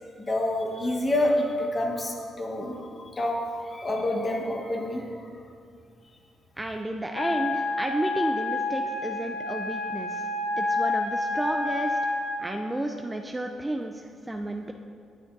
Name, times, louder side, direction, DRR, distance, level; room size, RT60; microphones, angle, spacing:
voice 1, 0.2-5.2, left 1 dB, 30° left, 1 dB, 1.2 m, -28 dB
voice 2, 6.6-10.2 10.6-12.0 12.4-14.7, right 1 dB, 15° right, 4 dB, 0.4 m, -32 dB
Wind instrument woodwind instrument, 7.1-12.5, left 2 dB, 80° left, 0.8 m, -29 dB
11.0 x 6.9 x 2.6 m, 2.2 s
cardioid pair, 90°, 0 cm